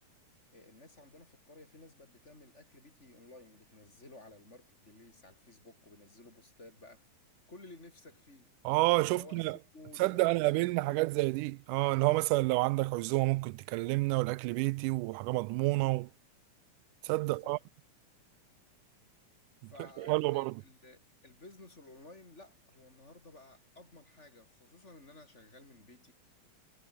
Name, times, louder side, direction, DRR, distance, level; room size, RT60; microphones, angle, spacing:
voice 1, 0.5-7.1 7.5-8.5 9.2-11.2 17.2-17.6 19.7-26.1, left 2 dB, 20° left, 4.3 m, -55 dB
voice 2, 8.7-9.6 10.0-16.1 17.0-17.6 20.0-20.5, right 21 dB, 90° right, 2.1 m, -29 dB
omnidirectional pair, 3.6 m